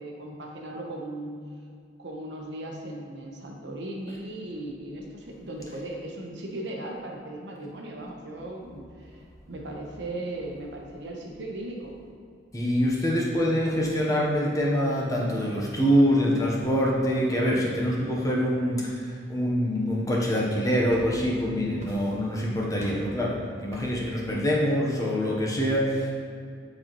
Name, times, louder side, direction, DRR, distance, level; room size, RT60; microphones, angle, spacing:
voice 1, 0.0-1.4 2.0-9.2 9.5-12.0, right 1 dB, 65° right, 0 dB, 0.9 m, -37 dB
voice 2, 12.5-26.1, equal, 15° left, -3 dB, 0.9 m, -25 dB
sound 1, 20.9-21.5 21.8-22.4 22.8-23.2 23.7-24.1, equal, 35° right, 1.0 m, -43 dB
9.3 x 4.2 x 3.0 m, 2.3 s
head